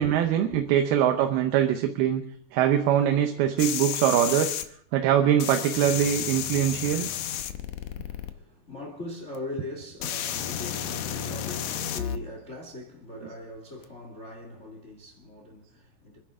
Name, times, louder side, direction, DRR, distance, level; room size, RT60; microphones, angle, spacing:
voice 1, 0.0-2.2 2.5-4.6 4.9-7.1, right 10 dB, 80° right, 2.8 m, -23 dB
sound 1, 3.6-4.6 5.4-8.3 9.3-9.4 10.0-12.2 13.8-13.9, left 10 dB, 70° left, 2.0 m, -32 dB
voice 2, 7.8-16.2, left 2 dB, 25° left, 1.7 m, -41 dB
28.5 x 11.0 x 3.7 m
omnidirectional pair, 4.4 m